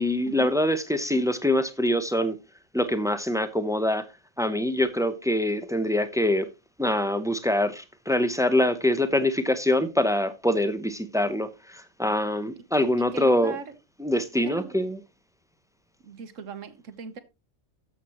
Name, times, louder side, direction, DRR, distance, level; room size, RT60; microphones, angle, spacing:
voice 1, 0.0-2.4 2.7-4.0 4.4-6.5 6.8-13.6 14.0-15.0, left 1 dB, 5° right, 0.5 m, -24 dB
voice 2, 13.0-13.7 14.4-14.8 16.0-17.2, right 5 dB, 85° right, 1.5 m, -39 dB
12.5 x 7.2 x 3.0 m
omnidirectional pair, 1.3 m